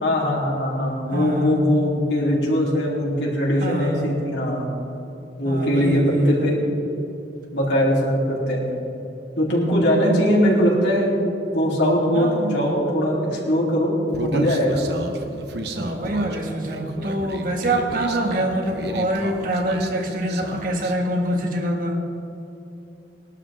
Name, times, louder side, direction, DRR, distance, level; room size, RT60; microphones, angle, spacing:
voice 1, 0.0-4.7 5.4-6.6 7.5-8.6 9.4-11.1 11.5-14.8, equal, 80° left, -4 dB, 3.5 m, -21 dB
voice 2, 1.1-1.7 3.6-4.0 5.4-6.4 10.0-10.6 12.1-12.6 15.7-22.0, right 1 dB, 50° right, 2 dB, 1.6 m, -25 dB
Human voice, 14.1-20.9, right 1 dB, 70° right, 1.1 m, -32 dB
20.0 x 12.0 x 3.8 m, 2.9 s
head